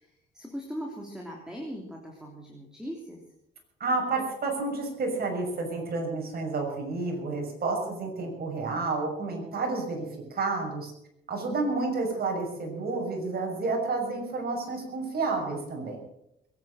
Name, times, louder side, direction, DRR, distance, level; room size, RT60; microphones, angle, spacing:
voice 1, 0.0-3.2, equal, 5° right, -1 dB, 3.2 m, -39 dB
voice 2, 3.8-10.9 11.3-16.0, right 3 dB, 50° right, 1 dB, 6.4 m, -30 dB
21.5 x 9.8 x 6.5 m, 0.84 s
cardioid pair, 90°, 20 cm